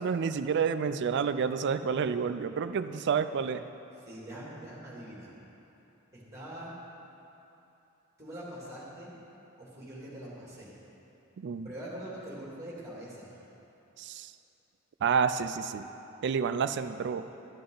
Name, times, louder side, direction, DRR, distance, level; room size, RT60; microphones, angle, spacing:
voice 1, 0.0-3.6 11.4-11.7 14.0-14.3 15.0-15.8 16.2-17.3, right 6 dB, 55° right, 11 dB, 0.4 m, -29 dB
voice 2, 4.0-5.3 6.1-6.8 8.2-9.2 9.6-10.8 11.6-13.3, right 1 dB, 15° right, -6 dB, 2.5 m, -43 dB
11.5 x 9.7 x 3.9 m, 2.9 s
head